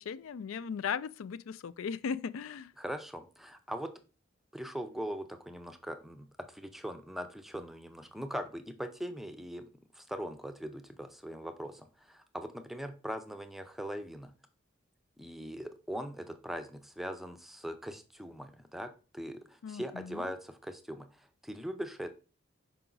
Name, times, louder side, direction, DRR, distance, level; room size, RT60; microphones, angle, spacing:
voice 1, 0.0-2.7 19.6-20.3, left 6 dB, 90° left, 0.4 m, -37 dB
voice 2, 2.8-3.9 4.5-14.3 15.2-22.1, equal, ahead, 0.5 m, -41 dB
5.8 x 4.9 x 3.9 m
head